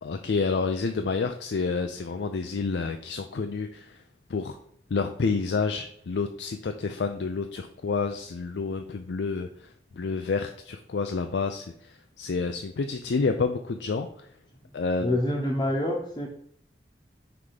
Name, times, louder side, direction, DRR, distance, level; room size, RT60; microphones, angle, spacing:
voice 1, 0.0-4.0 4.3-4.6 4.9-14.3 14.7-15.2, left 4 dB, 80° left, 7 dB, 0.5 m, -29 dB
voice 2, 15.0-16.3, left 1 dB, 25° left, -4 dB, 0.9 m, -26 dB
5.8 x 3.5 x 4.9 m, 0.67 s
head